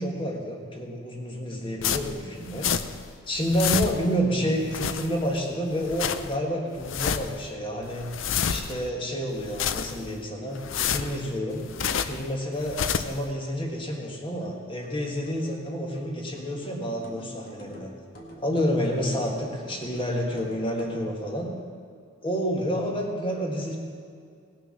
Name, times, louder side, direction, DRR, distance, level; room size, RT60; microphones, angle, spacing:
voice 1, 0.0-2.7 3.3-8.1 8.4-11.6 12.0-17.9 18.4-21.5 22.2-23.8, equal, 25° left, 0 dB, 1.7 m, -29 dB
sound 1, 1.8-3.1 3.3-4.2 4.6-5.4 5.7-6.4 6.8-7.4 7.8-8.9 9.3-10.2 10.5-12.3 12.6-13.2, left 7 dB, 70° left, 0.5 m, -29 dB
sound 2, 14.4-21.1, equal, 45° left, 1.8 m, -47 dB
18.5 x 6.7 x 6.4 m, 2.3 s
head